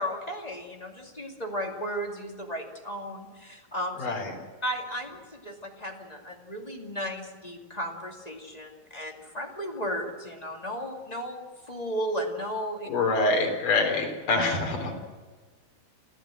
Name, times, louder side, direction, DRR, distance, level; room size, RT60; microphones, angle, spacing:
voice 1, 0.0-4.0 4.6-12.9, equal, 15° left, 1 dB, 1.5 m, -34 dB
voice 2, 4.0-4.3 12.8-15.0, left 3 dB, 55° left, 2 dB, 5.3 m, -25 dB
27.0 x 15.0 x 7.8 m, 1.4 s
omnidirectional pair, 4.5 m